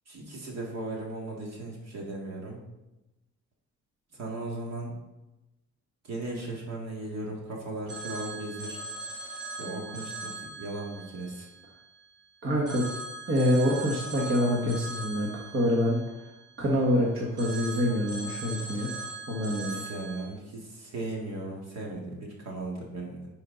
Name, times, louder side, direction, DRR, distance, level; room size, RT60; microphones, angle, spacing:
voice 1, 0.1-2.6 4.1-5.0 6.0-8.8 9.6-11.5 19.6-23.3, right 2 dB, 60° right, -1 dB, 2.3 m, -37 dB
Telephone, 7.9-12.2 12.7-16.9 17.4-20.2, right 2 dB, 80° right, 1.8 m, -40 dB
voice 2, 12.4-12.8 13.3-16.0 16.6-18.9 19.3-19.8, equal, 45° right, -3 dB, 1.7 m, -26 dB
9.8 x 4.7 x 4.0 m, 0.99 s
cardioid pair, 90°, 30 cm